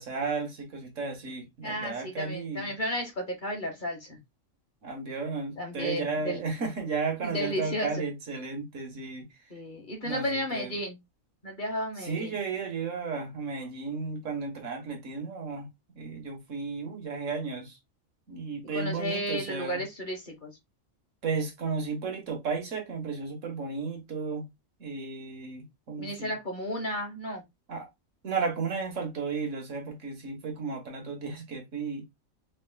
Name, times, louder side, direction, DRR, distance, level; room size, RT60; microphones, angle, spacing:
voice 1, 0.0-2.7 4.8-9.3 10.0-10.8 12.0-15.7 15.9-17.8 18.3-19.8 21.2-24.5 24.8-26.3 27.7-27.9 28.2-32.0, right 4 dB, 65° right, 1.6 m, -34 dB
voice 2, 1.6-4.2 5.6-6.4 7.2-8.0 9.5-11.0 11.4-12.4 18.7-20.5 25.9-27.4, equal, 40° left, 1.2 m, -33 dB
5.2 x 3.2 x 2.2 m
omnidirectional pair, 1.4 m